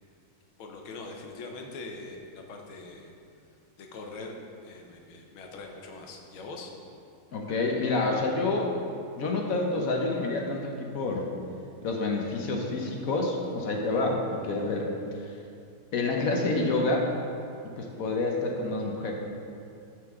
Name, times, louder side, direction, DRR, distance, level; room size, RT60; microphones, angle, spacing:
voice 1, 0.6-3.1 3.8-4.4 4.6-6.7 13.9-14.1, left 3 dB, 85° left, 2 dB, 1.7 m, -42 dB
voice 2, 7.3-8.7 9.2-11.3 11.8-14.9 15.9-17.1 17.6-19.1, left 2 dB, 60° left, 1 dB, 0.9 m, -28 dB
13.0 x 4.8 x 3.6 m, 2.5 s
omnidirectional pair, 2.2 m